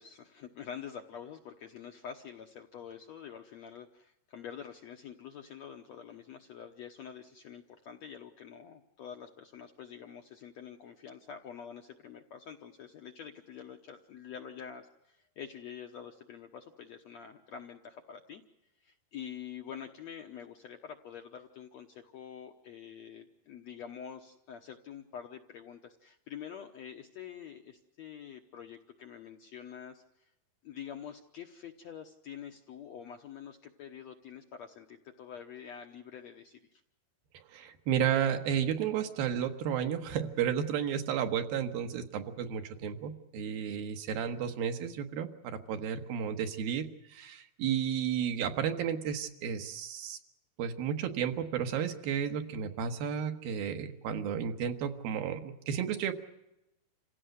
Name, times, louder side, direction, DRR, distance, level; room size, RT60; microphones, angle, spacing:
voice 1, 0.0-18.4 18.8-30.3 30.6-36.8, left 8 dB, 70° left, 4 dB, 1.7 m, -46 dB
voice 2, 37.3-50.2 50.6-56.1, right 8 dB, 75° right, 6 dB, 3.1 m, -32 dB
27.5 x 16.5 x 8.0 m, 0.89 s
omnidirectional pair, 4.4 m